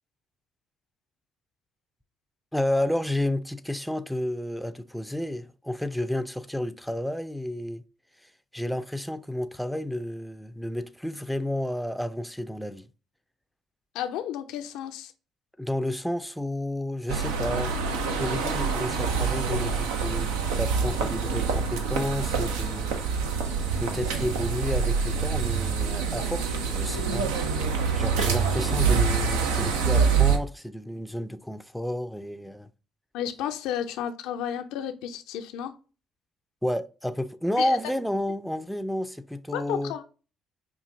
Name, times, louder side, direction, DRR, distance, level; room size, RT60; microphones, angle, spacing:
voice 1, 2.5-7.8 8.2-12.9 15.6-17.7 18.2-22.9 23.8-27.3 27.9-32.7 36.6-39.9, left 1 dB, ahead, 0.4 m, -31 dB
voice 2, 13.9-15.1 33.1-35.7 37.6-37.8 39.5-40.0, left 10 dB, 75° left, 0.4 m, -32 dB
sound 1, 17.1-30.4, right 5 dB, 85° right, 0.5 m, -26 dB
5.4 x 2.5 x 2.6 m
hypercardioid pair, 55°, 0 cm